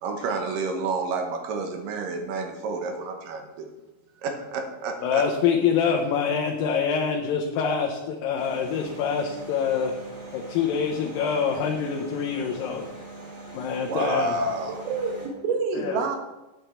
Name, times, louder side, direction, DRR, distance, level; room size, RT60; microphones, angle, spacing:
voice 1, 0.0-3.7 4.2-5.3 13.9-14.8, right 3 dB, 70° right, 4 dB, 2.6 m, -29 dB
voice 2, 5.0-9.9 10.3-12.9 13.5-14.3 15.7-16.0, left 6 dB, 75° left, 1 dB, 2.4 m, -25 dB
sound 1, 8.3-15.3, right 2 dB, 15° right, 1.8 m, -42 dB
voice 3, 14.6-16.2, right 5 dB, 90° right, 3 dB, 3.2 m, -28 dB
8.9 x 7.9 x 4.4 m, 1.0 s
omnidirectional pair, 4.2 m